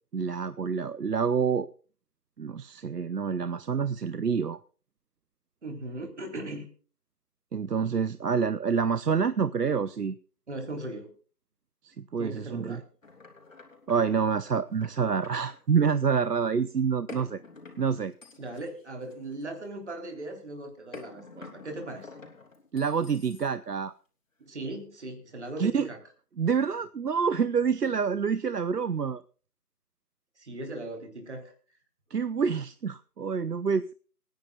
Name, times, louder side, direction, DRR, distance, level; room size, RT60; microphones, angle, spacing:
voice 1, 0.1-1.7 2.4-4.6 7.5-10.1 11.8-12.8 13.9-17.4 17.8-18.1 22.7-23.9 25.6-25.9 26.4-29.2 32.1-33.9, right 6 dB, 75° right, 15 dB, 0.8 m, -27 dB
voice 2, 5.6-6.7 10.5-11.1 12.2-12.8 18.4-22.1 24.4-26.0 30.4-31.5, right 2 dB, 45° right, 4 dB, 3.5 m, -38 dB
sound 1, 13.0-15.6 17.1-19.7 20.9-23.8, left 3 dB, 50° left, 3.7 m, -49 dB
26.5 x 10.5 x 2.3 m, 0.39 s
figure-of-eight pair, 165°, 48 cm